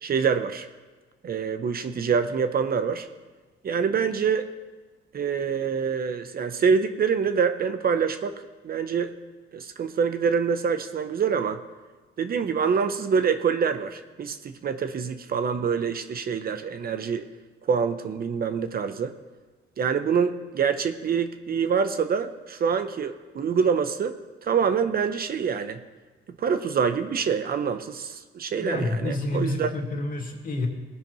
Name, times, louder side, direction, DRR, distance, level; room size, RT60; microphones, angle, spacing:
voice 1, 0.0-0.7 1.2-3.1 3.6-4.5 5.1-8.3 8.6-9.1 9.5-11.6 12.2-17.3 17.6-19.1 19.8-24.1 24.4-25.8 26.4-29.7, right 6 dB, 50° right, 9 dB, 0.7 m, -25 dB
voice 2, 28.5-30.7, left 2 dB, 45° left, 1 dB, 2.3 m, -29 dB
18.5 x 10.0 x 3.1 m, 1.3 s
cardioid pair, 90°, 20 cm